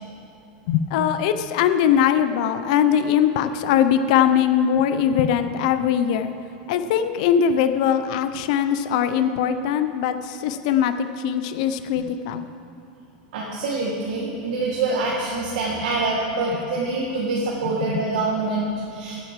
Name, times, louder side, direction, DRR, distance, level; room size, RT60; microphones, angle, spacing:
voice 1, 0.7-6.3 6.7-12.5 17.8-18.0, left 9 dB, 50° left, 9 dB, 0.7 m, -21 dB
voice 2, 13.3-19.2, right 3 dB, 70° right, -4 dB, 2.2 m, -25 dB
15.0 x 9.6 x 4.9 m, 2.7 s
supercardioid pair, 170°, 5 cm